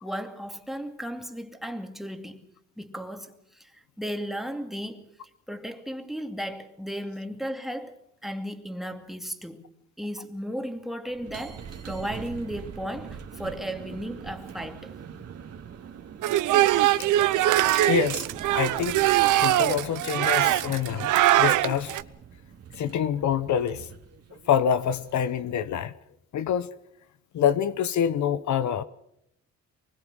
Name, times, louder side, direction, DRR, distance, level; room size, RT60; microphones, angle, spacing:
voice 1, 0.0-2.5 2.8-5.1 5.5-9.6 10.0-14.9, equal, ahead, 2.4 m, -35 dB
sound 1, 11.1-25.5, right 7 dB, 55° right, 2.3 m, -43 dB
sound 2, 16.2-22.0, right 15 dB, 85° right, 0.9 m, -22 dB
voice 2, 17.6-18.3 18.5-19.0 19.4-21.1 21.4-22.0 22.8-23.9 24.5-25.9 26.3-26.7 27.3-28.8, left 9 dB, 70° left, 1.0 m, -26 dB
24.0 x 21.0 x 6.3 m
cardioid pair, 90°, 30 cm